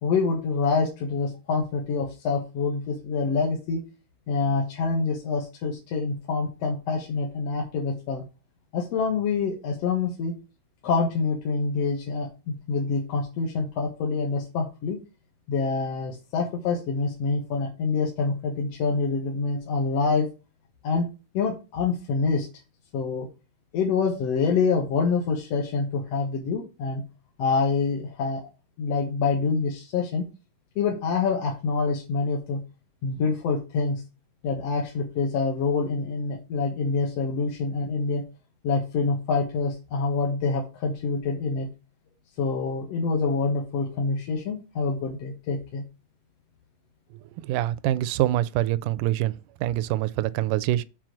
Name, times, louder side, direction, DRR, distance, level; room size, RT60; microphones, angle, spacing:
voice 1, 0.0-3.8 4.3-8.2 8.7-10.3 10.8-15.0 15.5-20.3 20.8-21.1 21.3-22.5 22.9-23.3 23.7-27.0 27.4-28.4 28.8-30.3 30.8-32.6 33.0-34.0 34.4-38.2 38.6-41.7 42.4-45.8, left 4 dB, 55° left, 2.3 m, -26 dB
voice 2, 47.4-49.3 49.6-50.8, right 14 dB, 80° right, 2.1 m, -25 dB
7.5 x 4.4 x 6.3 m
omnidirectional pair, 3.8 m